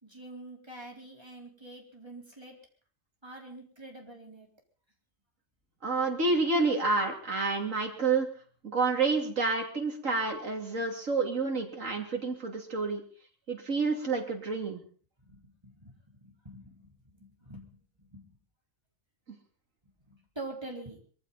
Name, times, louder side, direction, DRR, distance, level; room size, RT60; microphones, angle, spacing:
voice 1, 0.0-2.6 3.2-4.5 15.2-18.2 19.8-21.0, right 2 dB, 20° right, 0 dB, 4.1 m, -46 dB
voice 2, 5.8-8.3 8.6-13.0 13.5-14.8, right 3 dB, 75° right, 2 dB, 3.3 m, -29 dB
23.0 x 15.0 x 4.1 m, 0.43 s
omnidirectional pair, 1.3 m